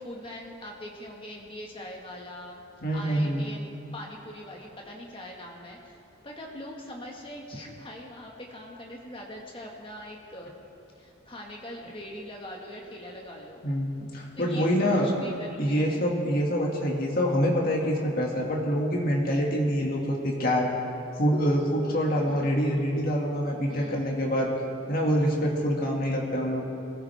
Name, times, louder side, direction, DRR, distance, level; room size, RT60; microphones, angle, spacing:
voice 1, 0.0-2.6 2.9-6.0 6.2-10.6 10.9-13.7 14.3-16.1 22.1-22.5 23.7-24.1, left 1 dB, 25° left, -1 dB, 1.7 m, -42 dB
voice 2, 2.8-3.5 13.6-15.1 15.6-20.7 21.2-24.5 24.9-26.6, equal, 45° left, -2 dB, 2.1 m, -26 dB
21.0 x 15.0 x 3.5 m, 2.7 s
head